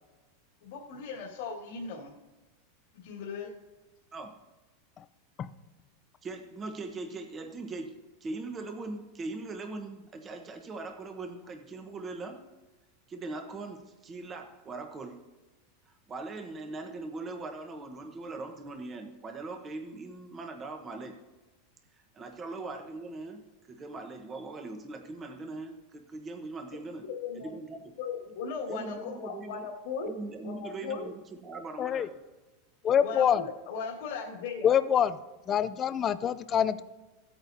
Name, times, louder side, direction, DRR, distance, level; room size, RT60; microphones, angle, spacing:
voice 1, 0.6-2.1 2.9-3.5 27.0-27.6 28.0-30.1 30.4-31.1 33.0-34.7, left 5 dB, 70° left, -5 dB, 1.9 m, -37 dB
voice 2, 6.2-7.9 8.2-12.4 13.1-15.2 15.9-21.2 22.1-27.0 27.3-27.9 28.7-29.7 30.0-32.2, right 3 dB, 20° right, 5 dB, 1.1 m, -40 dB
voice 3, 32.8-33.4 34.6-35.2 35.5-36.8, left 9 dB, 25° left, 14 dB, 0.4 m, -25 dB
16.0 x 8.9 x 2.7 m, 1.1 s
supercardioid pair, 160°, 0 cm